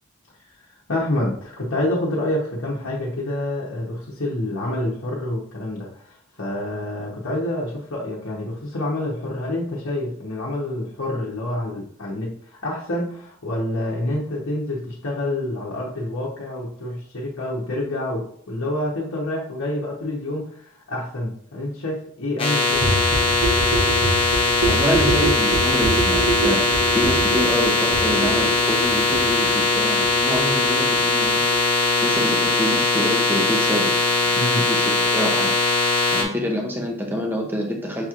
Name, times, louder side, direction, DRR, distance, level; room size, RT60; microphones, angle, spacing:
voice 1, 0.6-23.2 34.3-34.6, left 1 dB, 65° left, -5 dB, 0.9 m, -27 dB
sound 1, 22.4-36.2, left 3 dB, 25° left, 0.8 m, -20 dB
sound 2, 22.7-34.2 34.5-34.6 34.8-34.9 35.1-35.2 35.4-35.5 35.7-35.8 36.0-36.1, right 2 dB, 75° right, 1.2 m, -26 dB
voice 2, 24.6-26.6 26.9-31.4 32.0-33.9 34.7-35.5 35.8-38.1, equal, 10° right, 1 dB, 0.6 m, -26 dB
6.3 x 3.0 x 2.5 m, 0.63 s
head